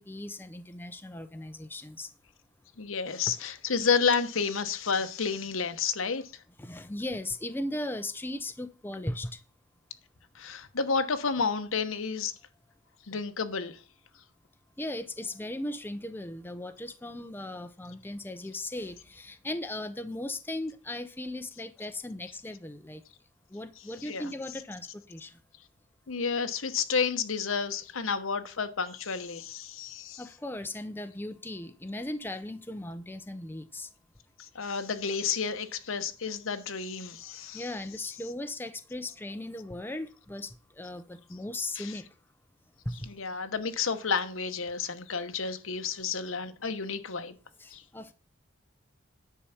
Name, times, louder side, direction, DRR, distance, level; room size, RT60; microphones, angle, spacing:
voice 1, 0.0-2.1 6.6-9.3 14.8-23.0 23.5-25.3 30.2-33.9 37.5-42.0 42.9-43.0 47.6-48.1, left 1 dB, 10° left, 0.6 m, -37 dB
voice 2, 2.8-6.2 10.3-12.3 13.1-13.8 24.0-24.3 26.1-30.2 34.4-37.7 41.8-42.0 43.1-47.3 47.7-47.8, left 5 dB, 80° left, 1.0 m, -30 dB
10.0 x 4.8 x 7.1 m
head